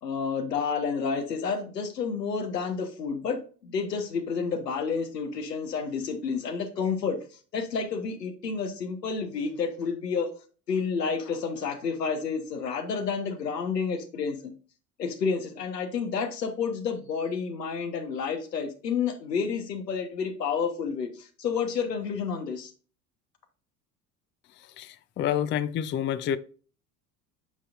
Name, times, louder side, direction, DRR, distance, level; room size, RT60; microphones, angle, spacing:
voice 1, 0.0-7.2 7.5-10.3 10.7-14.5 15.0-22.7, left 5 dB, 85° left, 1.2 m, -30 dB
voice 2, 24.8-26.4, left 10 dB, 25° left, 0.5 m, -28 dB
8.8 x 5.5 x 2.5 m
hypercardioid pair, 70°, 48 cm